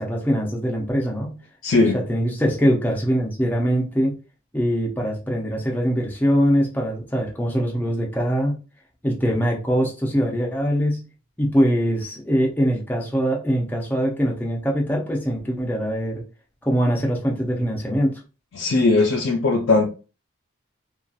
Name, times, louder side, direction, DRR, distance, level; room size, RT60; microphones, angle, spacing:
voice 1, 0.0-1.4 1.9-4.2 4.5-8.6 9.0-11.0 11.4-16.2 16.6-18.2, equal, 10° left, 0.5 m, -22 dB
voice 2, 1.6-2.0 18.6-19.9, left 3 dB, 65° left, 0.4 m, -18 dB
2.7 x 2.3 x 2.3 m
head